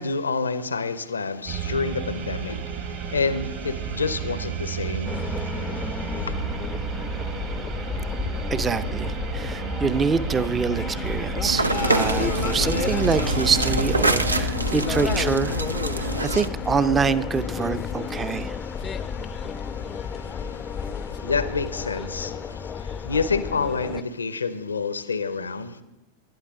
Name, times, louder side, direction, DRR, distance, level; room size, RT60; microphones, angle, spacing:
voice 1, 0.0-6.3 12.3-12.6 14.4-14.7 15.9-16.4 18.0-25.8, left 4 dB, 75° left, 0.8 m, -30 dB
sound 1, 1.5-14.4, right 8 dB, 45° right, 1.7 m, -32 dB
sound 2, 5.0-24.0, left 6 dB, 20° left, 0.6 m, -31 dB
voice 2, 8.5-15.6 15.9-18.6, right 5 dB, 20° right, 0.7 m, -25 dB
sound 3, 11.4-16.5, right 2 dB, 80° right, 0.6 m, -26 dB
20.0 x 11.5 x 3.7 m
figure-of-eight pair, 90°, 0 cm